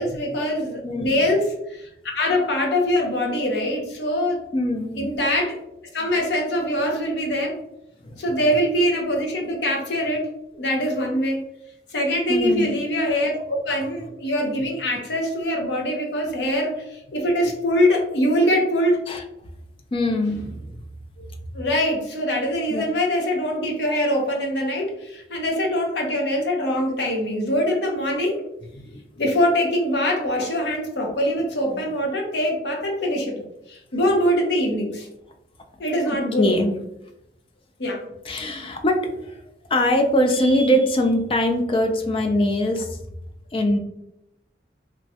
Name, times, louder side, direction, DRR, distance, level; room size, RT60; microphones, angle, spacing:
voice 1, 0.0-4.4 5.0-5.6 5.9-7.6 8.2-11.4 11.9-19.0 21.5-28.4 29.2-35.1 35.8-36.5 37.8-38.0, equal, 75° left, 1 dB, 0.7 m, -23 dB
voice 2, 0.8-1.2 4.5-5.1 8.0-8.2 12.3-12.8 19.1-19.2 19.9-20.7 22.7-22.8 28.7-29.0 31.7-31.8 36.4-36.8 38.3-39.4 39.7-43.0 43.5-43.8, left 1 dB, 30° left, 4 dB, 0.3 m, -22 dB
3.0 x 2.2 x 2.7 m, 0.82 s
head